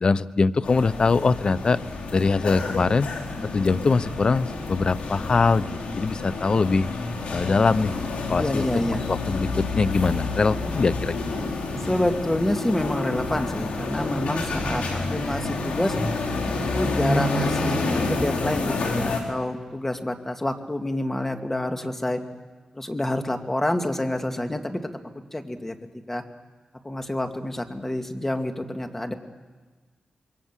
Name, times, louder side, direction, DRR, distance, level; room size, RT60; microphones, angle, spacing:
voice 1, 0.0-1.8 2.1-3.1 3.5-6.9 7.3-7.9 8.3-8.7 9.1-11.1, left 4 dB, 45° left, 15 dB, 0.7 m, -22 dB
sound 1, 0.6-19.2, left 3 dB, 80° left, 4.1 m, -29 dB
voice 2, 8.4-9.0 11.9-16.0 16.7-22.2 22.7-24.8 25.3-25.7 26.1-26.2 26.8-29.1, left 1 dB, 15° left, 6 dB, 2.2 m, -27 dB
27.5 x 23.0 x 7.5 m, 1.4 s
cardioid pair, 80°, 2 cm